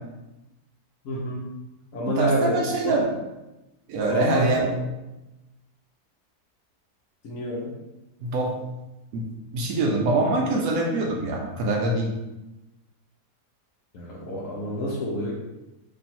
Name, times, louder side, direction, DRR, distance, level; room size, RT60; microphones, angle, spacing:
voice 1, 1.0-1.5 1.9-2.9 4.0-4.8 7.2-7.7 13.9-15.3, equal, 60° left, -5 dB, 1.0 m, -27 dB
voice 2, 2.1-3.0 3.9-4.7 8.2-8.5 9.1-9.2 9.5-12.1, right 2 dB, 70° right, 0 dB, 1.0 m, -24 dB
3.1 x 2.7 x 4.2 m, 1.0 s
omnidirectional pair, 1.8 m